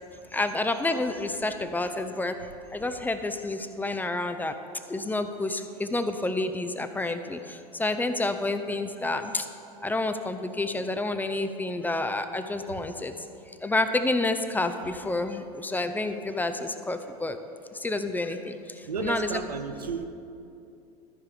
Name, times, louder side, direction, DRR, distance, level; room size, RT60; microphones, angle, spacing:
voice 1, 0.3-2.4 2.7-4.6 4.9-9.5 9.8-13.1 13.6-17.4 17.7-19.4, left 2 dB, 10° left, 8 dB, 0.5 m, -29 dB
voice 2, 18.9-20.0, right 5 dB, 90° right, 7 dB, 0.7 m, -32 dB
13.5 x 4.8 x 4.9 m, 2.6 s
hypercardioid pair, 90°, 20 cm